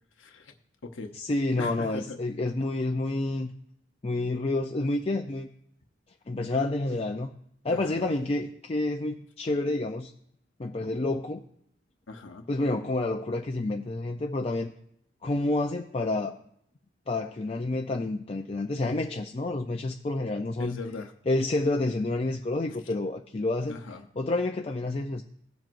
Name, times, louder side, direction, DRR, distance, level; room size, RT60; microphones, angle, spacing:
voice 1, 0.2-0.5 0.9-1.1 1.6-2.2 7.7-8.1 12.1-12.5 20.6-21.1 23.7-24.0, left 3 dB, 80° left, 4 dB, 0.8 m, -39 dB
voice 2, 1.1-3.5 4.0-5.5 6.3-7.3 7.6-10.1 10.6-11.4 12.5-14.7 15.2-16.4 17.1-20.8 21.3-23.8 24.1-25.2, left 2 dB, 30° left, 3 dB, 0.4 m, -29 dB
17.5 x 7.5 x 2.6 m, 0.71 s
head